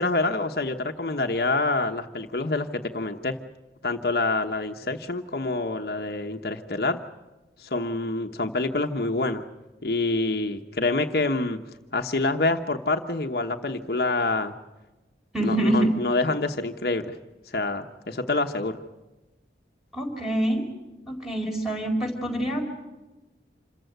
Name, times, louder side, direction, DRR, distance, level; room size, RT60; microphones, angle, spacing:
voice 1, 0.0-3.4 3.8-7.0 7.6-9.4 9.8-11.6 11.9-14.5 15.4-17.2 17.5-18.8, left 2 dB, 60° left, 5 dB, 1.1 m, -26 dB
voice 2, 15.3-15.9 19.9-20.6 21.1-22.6, right 1 dB, 5° right, 1 dB, 4.5 m, -25 dB
27.0 x 15.0 x 9.3 m, 1.1 s
head